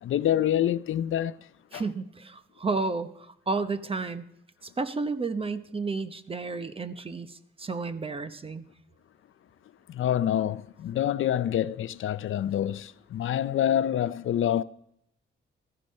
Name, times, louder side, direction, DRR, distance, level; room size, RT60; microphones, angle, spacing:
voice 1, 0.0-1.3 1.7-1.8 9.9-14.6, left 11 dB, 75° left, 0.5 m, -26 dB
voice 2, 1.7-4.2 4.6-8.7, right 3 dB, 25° right, 0.8 m, -32 dB
15.0 x 14.0 x 5.5 m
wide cardioid pair, 135°, 21 cm